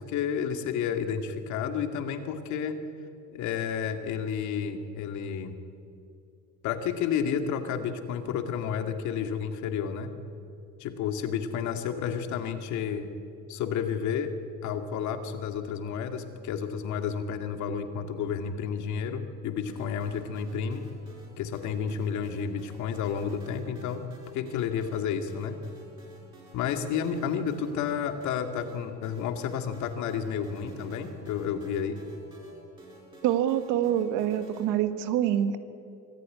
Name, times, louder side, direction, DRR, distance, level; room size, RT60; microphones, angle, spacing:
voice 1, 0.0-2.8 3.3-5.6 6.6-10.1 10.8-13.1 13.5-14.3 14.6-20.9 21.4-24.0 24.3-25.6 26.5-32.0, left 7 dB, 65° left, 7 dB, 2.2 m, -31 dB
sound 1, 19.7-34.7, right 1 dB, 15° right, 5.5 m, -51 dB
voice 2, 33.2-35.6, right 10 dB, 80° right, 11 dB, 1.6 m, -26 dB
25.0 x 14.5 x 9.6 m, 2.6 s
cardioid pair, 160°, 31 cm